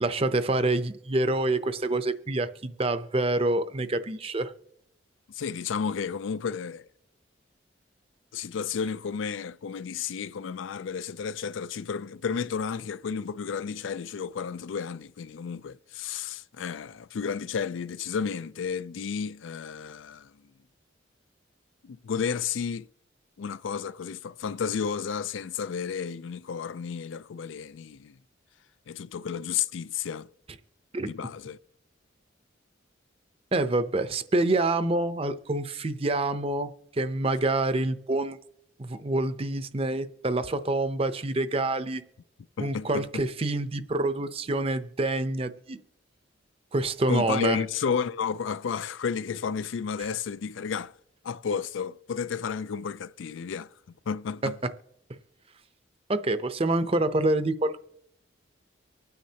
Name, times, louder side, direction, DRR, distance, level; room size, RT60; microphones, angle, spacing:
voice 1, 0.0-4.5 30.9-31.1 33.5-38.4 38.8-42.0 42.6-45.8 46.7-47.6 50.0-50.1 56.1-57.8, right 2 dB, 30° right, 0.6 m, -27 dB
voice 2, 5.3-6.9 8.3-20.3 21.8-22.9 23.4-28.2 28.9-30.3 31.0-31.6 42.6-43.2 47.1-50.9 51.2-53.7 54.1-54.6, left 6 dB, 80° left, 0.4 m, -32 dB
24.0 x 9.4 x 2.8 m
head